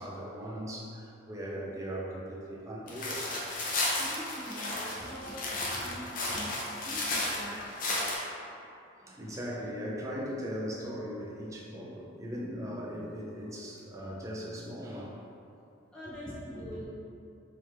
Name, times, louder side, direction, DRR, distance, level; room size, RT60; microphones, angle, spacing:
voice 1, 0.0-3.3 3.6-3.7 5.7-5.9 6.3-6.8 9.0-15.1 16.0-16.1 16.5-16.8, equal, 15° right, -4 dB, 0.4 m, -39 dB
sound 1, 2.9-8.2, left 2 dB, 45° left, 0.5 m, -33 dB
voice 2, 3.9-7.6 15.9-16.8, equal, 5° left, -11 dB, 0.9 m, -44 dB
3.5 x 2.9 x 3.2 m, 2.7 s
head